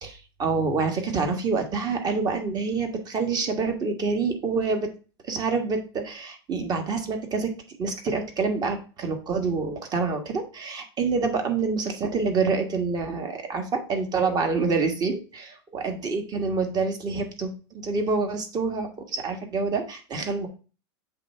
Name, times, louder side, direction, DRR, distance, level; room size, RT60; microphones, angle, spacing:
voice 1, 0.0-4.9 5.2-20.5, right 4 dB, 30° right, 5 dB, 1.5 m, -27 dB
7.5 x 3.5 x 4.2 m, 0.35 s
supercardioid pair, 125°, 14 cm